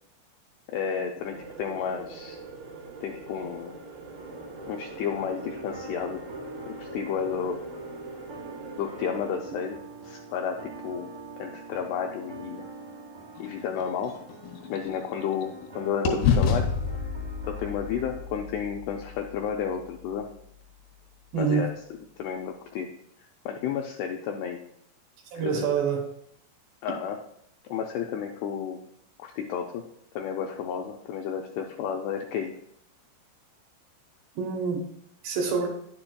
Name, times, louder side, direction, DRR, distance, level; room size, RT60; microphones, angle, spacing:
voice 1, 0.7-2.4 3.0-3.7 4.7-6.2 6.7-7.6 8.8-11.1 11.4-12.6 13.4-14.2 14.7-16.7 17.5-20.3 21.3-21.7 22.2-22.9 23.5-24.6 25.3-25.8 26.8-27.2 27.7-28.8 29.2-29.8 30.2-32.6, left 7 dB, 85° left, 2 dB, 2.4 m, -32 dB
sound 1, 1.2-9.4, right 4 dB, 90° right, 3.6 m, -43 dB
sound 2, 4.1-18.2, right 2 dB, 55° right, 0.9 m, -43 dB
sound 3, 13.4-15.7 16.1-20.0, left 5 dB, 70° left, 3.2 m, -30 dB
voice 2, 21.3-21.7 25.3-26.0 34.4-34.8 35.2-35.7, right 6 dB, 70° right, 1 dB, 3.0 m, -26 dB
10.0 x 7.7 x 2.3 m, 0.72 s
omnidirectional pair, 5.3 m